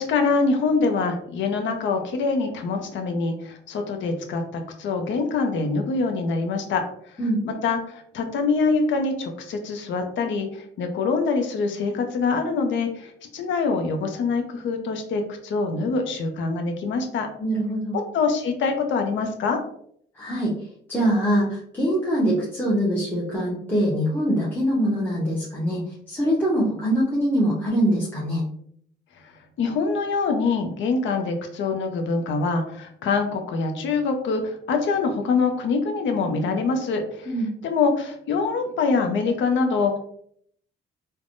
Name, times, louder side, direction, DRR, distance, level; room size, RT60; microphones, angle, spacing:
voice 1, 0.0-6.8 7.4-17.3 17.9-19.6 29.6-37.3 37.6-40.0, left 4 dB, 70° left, 5 dB, 0.6 m, -24 dB
voice 2, 17.4-17.9 20.2-20.5 20.9-25.8 26.1-28.5 37.3-37.5, equal, 10° left, -7 dB, 0.8 m, -23 dB
3.3 x 2.1 x 2.5 m, 0.65 s
cardioid pair, 90°, 20 cm